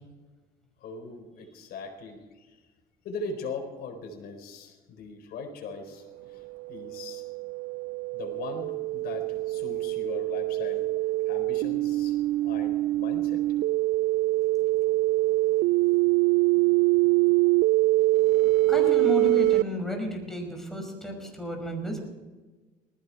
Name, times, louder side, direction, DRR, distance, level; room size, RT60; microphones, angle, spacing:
voice 1, 0.8-2.6 3.0-6.4 6.7-7.2 8.1-10.9 11.2-12.1 12.4-13.4 15.4-15.6 16.5-16.7 21.2-21.4, left 4 dB, 70° left, 5 dB, 4.3 m, -40 dB
sound 1, 6.4-19.6, right 18 dB, 80° right, 0.5 m, -24 dB
voice 2, 18.7-22.0, left 1 dB, ahead, 2 dB, 5.6 m, -32 dB
19.5 x 15.5 x 4.6 m, 1.3 s
cardioid pair, 110°, 17 cm